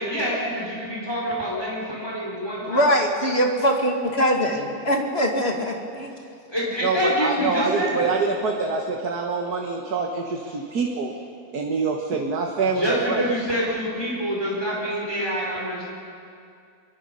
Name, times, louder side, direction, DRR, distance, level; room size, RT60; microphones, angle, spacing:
voice 1, 0.0-3.0 6.5-8.2 12.7-15.9, equal, 15° left, -5 dB, 5.2 m, -26 dB
voice 2, 2.7-6.1, equal, 35° left, 1 dB, 2.5 m, -22 dB
voice 3, 6.8-11.1 11.5-13.2, right 4 dB, 65° right, 1 dB, 2.0 m, -25 dB
25.0 x 23.0 x 5.5 m, 2.4 s
omnidirectional pair, 1.8 m